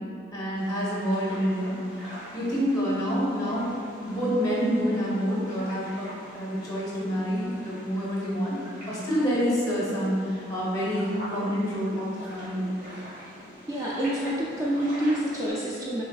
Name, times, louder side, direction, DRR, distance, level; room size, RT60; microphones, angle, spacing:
voice 1, 0.3-1.8 2.3-3.7 4.0-8.6 8.9-12.7, equal, 20° left, -6 dB, 1.0 m, -27 dB
sound 1, 0.5-15.5, equal, 40° right, 1.4 m, -45 dB
voice 2, 13.7-16.0, right 1 dB, 20° right, -6 dB, 0.4 m, -27 dB
6.5 x 3.3 x 2.3 m, 2.5 s
head